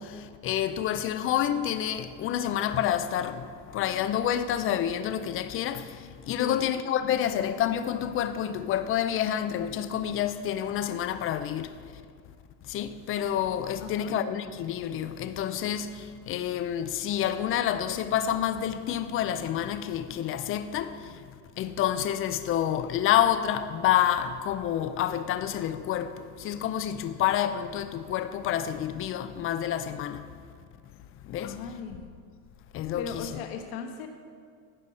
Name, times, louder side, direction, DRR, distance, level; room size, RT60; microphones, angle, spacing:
voice 1, 0.0-11.7 12.6-21.2 21.6-30.2 31.2-31.6 32.7-33.3, left 10 dB, 30° left, 0.4 m, -28 dB
voice 2, 13.8-14.2 31.4-32.1 33.0-34.1, left 7 dB, 70° left, 1.3 m, -37 dB
15.5 x 5.2 x 4.2 m
supercardioid pair, 110°, 46 cm